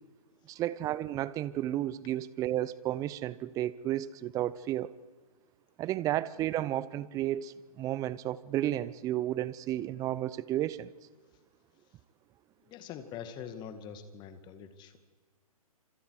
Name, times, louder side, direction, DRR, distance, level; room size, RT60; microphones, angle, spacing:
voice 1, 0.5-4.9 5.8-10.9, right 13 dB, 20° right, 19 dB, 0.6 m, -32 dB
voice 2, 12.6-15.0, left 8 dB, 25° left, 9 dB, 2.1 m, -44 dB
28.0 x 26.5 x 4.9 m, 1.4 s
figure-of-eight pair, 125°, 19 cm